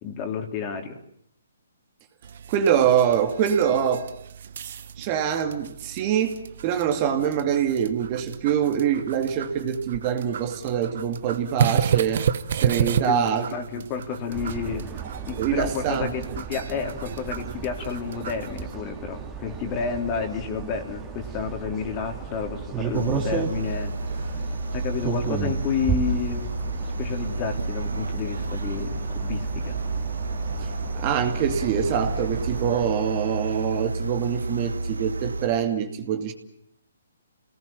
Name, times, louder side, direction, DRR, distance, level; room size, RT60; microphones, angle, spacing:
voice 1, 0.0-1.0 13.1-14.9 15.2-23.9 24.2-24.3 24.7-26.5 27.0-29.8, left 6 dB, 30° left, 4 dB, 3.8 m, -30 dB
sound 1, 2.2-18.8, right 8 dB, 55° right, 1.3 m, -32 dB
voice 2, 2.5-4.1 4.6-12.3 12.5-13.5 15.4-16.2 30.6-36.3, right 8 dB, 35° right, 5 dB, 2.5 m, -24 dB
sound 2, 14.3-32.9, right 7 dB, 15° right, 3.0 m, -34 dB
sound 3, 22.9-35.5, right 2 dB, 80° right, 1.3 m, -31 dB
29.5 x 19.0 x 7.4 m, 0.71 s
figure-of-eight pair, 135°, 0 cm